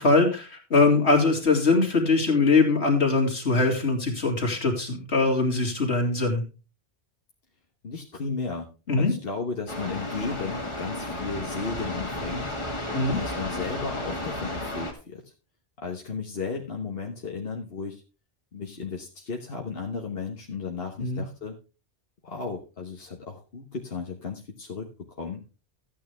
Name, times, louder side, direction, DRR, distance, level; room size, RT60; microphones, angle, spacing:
voice 1, 0.0-6.4 8.9-9.1 12.9-13.2 21.0-21.2, left 3 dB, 75° left, 2 dB, 3.0 m, -22 dB
voice 2, 7.8-8.7 9.0-12.5 13.1-15.3 15.8-18.0 18.5-21.6 22.2-25.4, left 4 dB, 60° left, 1 dB, 1.5 m, -34 dB
sound 1, 9.7-14.9, left 1 dB, 25° left, 2.0 m, -33 dB
13.5 x 9.0 x 3.4 m, 0.32 s
omnidirectional pair, 1.1 m